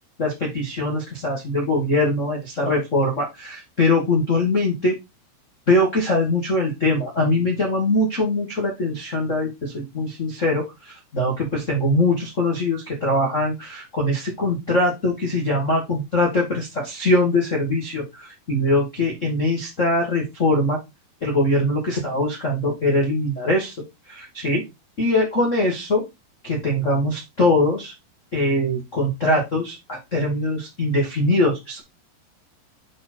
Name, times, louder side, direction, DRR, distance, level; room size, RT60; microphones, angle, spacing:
voice 1, 0.2-5.0 5.7-20.8 21.2-23.8 24.1-24.6 25.0-26.0 26.4-27.9 28.3-31.8, left 1 dB, 45° left, -3 dB, 0.9 m, -22 dB
7.7 x 4.3 x 4.4 m, 0.22 s
omnidirectional pair, 4.7 m